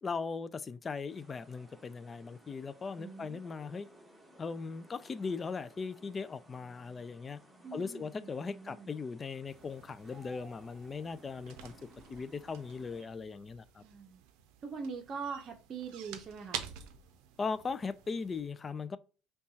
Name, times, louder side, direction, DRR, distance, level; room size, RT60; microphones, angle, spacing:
voice 1, 0.0-3.9 4.4-7.4 7.7-11.7 12.1-13.8 17.4-19.0, left 4 dB, 30° left, 0.3 m, -39 dB
sound 1, 1.1-13.0, right 1 dB, 10° right, 1.3 m, -59 dB
voice 2, 3.0-3.4 7.6-8.9 13.8-14.2 14.6-16.7, right 5 dB, 40° right, 0.7 m, -43 dB
sound 2, 9.5-18.4, right 9 dB, 80° right, 0.5 m, -49 dB
5.4 x 2.3 x 2.8 m
supercardioid pair, 100°, 0 cm